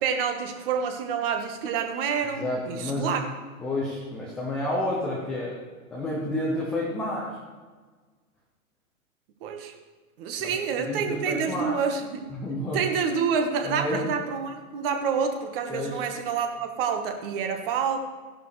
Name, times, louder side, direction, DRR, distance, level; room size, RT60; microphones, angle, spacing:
voice 1, 0.0-3.2 9.4-9.7 10.2-12.3 12.7-18.0, right 6 dB, 40° right, 5 dB, 1.6 m, -28 dB
voice 2, 2.3-3.2 3.6-5.6 5.9-7.3 10.4-11.8 12.3-12.8 13.6-14.1 15.7-16.0, left 1 dB, ahead, -6 dB, 0.4 m, -30 dB
14.5 x 10.5 x 3.3 m, 1.4 s
hypercardioid pair, 130°, 43 cm